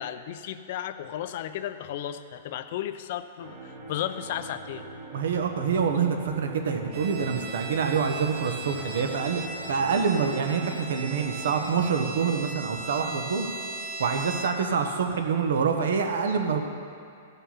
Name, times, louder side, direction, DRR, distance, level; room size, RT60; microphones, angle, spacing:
voice 1, 0.0-4.8, left 11 dB, 50° left, 10 dB, 0.5 m, -34 dB
sound 1, 3.4-11.8, right 3 dB, 55° right, 2.3 m, -43 dB
voice 2, 5.1-13.5 14.0-16.6, right 6 dB, 75° right, 5 dB, 1.1 m, -26 dB
Bowed string instrument, 6.9-14.7, right 3 dB, 30° right, 1.5 m, -38 dB
15.5 x 5.6 x 5.7 m, 2.4 s
hypercardioid pair, 160°, 0 cm